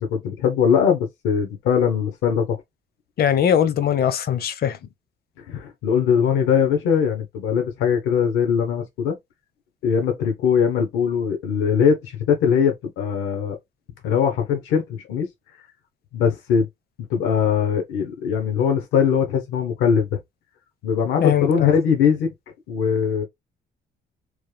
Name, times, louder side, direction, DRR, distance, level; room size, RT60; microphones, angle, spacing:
voice 1, 0.0-2.6 5.5-9.1 9.8-13.6 14.0-15.3 16.1-16.7 17.1-20.2 20.8-22.3 22.7-23.2, left 7 dB, 90° left, 0.9 m, -21 dB
voice 2, 3.2-4.8 21.2-21.7, left 9 dB, 55° left, 0.6 m, -20 dB
3.2 x 2.2 x 3.3 m
cardioid pair, 90°, 20 cm